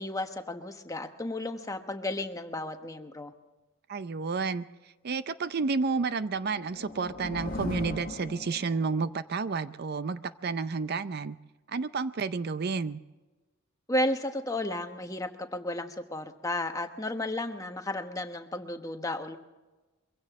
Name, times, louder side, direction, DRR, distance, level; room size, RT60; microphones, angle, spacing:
voice 1, 0.0-3.3 13.9-19.4, left 1 dB, 15° left, 1.1 m, -33 dB
voice 2, 3.9-4.7 5.0-11.4 11.7-13.0, right 4 dB, 50° right, 0.5 m, -31 dB
sound 1, 6.2-9.1, left 2 dB, 45° left, 1.6 m, -38 dB
23.0 x 16.0 x 3.6 m
head